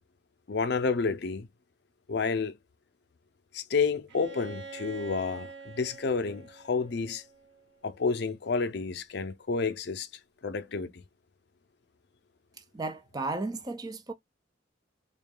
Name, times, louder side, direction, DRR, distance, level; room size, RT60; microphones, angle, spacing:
voice 1, 0.5-1.5 2.1-2.5 3.5-7.2 7.8-10.1 10.4-11.0, left 4 dB, 60° left, 0.5 m, -30 dB
Bowed string instrument, 4.1-7.9, right 5 dB, 80° right, 0.9 m, -46 dB
voice 2, 12.7-14.1, right 3 dB, 20° right, 0.4 m, -34 dB
3.6 x 2.3 x 3.6 m
head